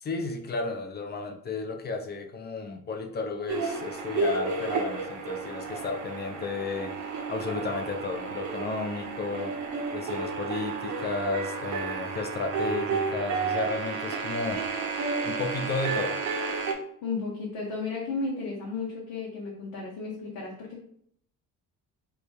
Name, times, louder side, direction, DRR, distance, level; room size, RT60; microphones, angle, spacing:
voice 1, 0.0-6.9 7.3-9.5 9.9-16.2, left 3 dB, 20° left, 4 dB, 0.4 m, -33 dB
sound 1, 3.5-16.7, right 4 dB, 40° right, 0.6 m, -32 dB
Bowed string instrument, 10.2-13.9, right 1 dB, 5° left, 1.1 m, -49 dB
voice 2, 17.0-20.8, left 4 dB, 65° left, -4 dB, 0.8 m, -34 dB
2.2 x 2.2 x 3.1 m, 0.65 s
hypercardioid pair, 45°, 49 cm